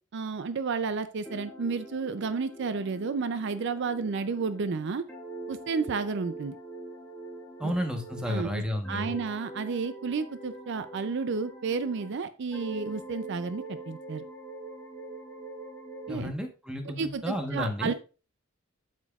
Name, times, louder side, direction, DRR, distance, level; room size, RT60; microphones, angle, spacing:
voice 1, 0.1-5.0 5.5-6.6 7.6-7.7 8.3-14.3 16.1-16.3 17.0-17.9, right 4 dB, 60° right, 12 dB, 0.4 m, -31 dB
sound 1, 1.2-8.4 8.8-12.2 12.5-16.2, right 2 dB, 10° left, 1.7 m, -43 dB
voice 2, 7.6-9.2 16.1-17.9, equal, 5° right, 4 dB, 1.1 m, -32 dB
8.2 x 7.4 x 2.4 m, 0.34 s
head